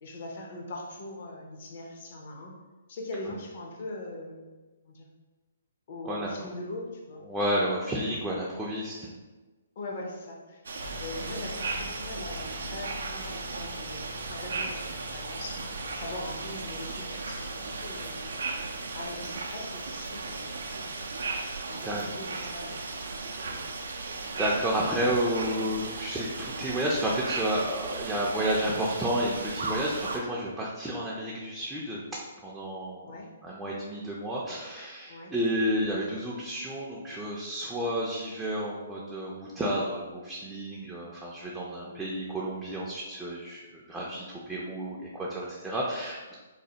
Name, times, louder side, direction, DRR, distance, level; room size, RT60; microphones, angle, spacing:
voice 1, 0.0-2.5 2.9-4.5 4.8-5.1 5.9-7.2 9.8-10.7 11.0-18.2 18.9-20.7 21.7-22.9 23.3-23.7 33.0-33.3 35.1-35.3 41.8-42.0, left 2 dB, 55° left, 0 dB, 0.6 m, -41 dB
voice 2, 7.3-9.1 21.8-22.0 23.2-23.5 24.2-32.0 32.4-33.1 33.4-46.3, equal, 10° right, -5 dB, 0.4 m, -31 dB
sound 1, 10.6-30.2, right 3 dB, 75° right, 0.4 m, -36 dB
sound 2, 10.8-21.4, left 1 dB, 80° left, 0.9 m, -46 dB
3.1 x 2.1 x 2.8 m, 1.3 s
hypercardioid pair, 135°, 0 cm